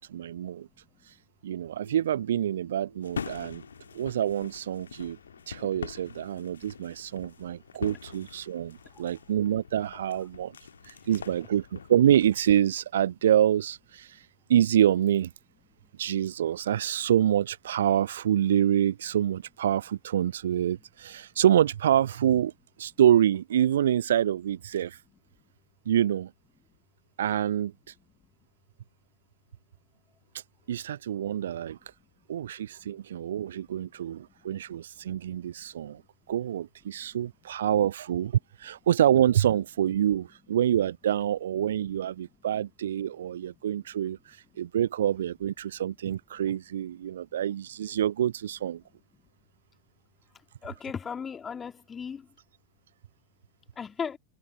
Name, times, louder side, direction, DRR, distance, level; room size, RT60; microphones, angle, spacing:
voice 1, 0.1-0.7 1.4-3.6 3.9-5.2 5.5-10.5 10.9-14.2 14.5-15.3 16.0-22.5 22.8-25.0 25.9-26.3 27.2-27.7 30.7-31.8 32.3-36.0 36.3-38.3 38.6-48.8, right 10 dB, 60° right, 0.5 m, -26 dB
sound 1, 3.0-12.6, left 7 dB, 70° left, 1.6 m, -43 dB
Keyboard (musical), 4.6-4.7, right 3 dB, 80° right, 2.9 m, -54 dB
voice 2, 50.6-52.3 53.8-54.2, left 6 dB, 20° left, 2.2 m, -36 dB
figure-of-eight pair, 90°, 0 cm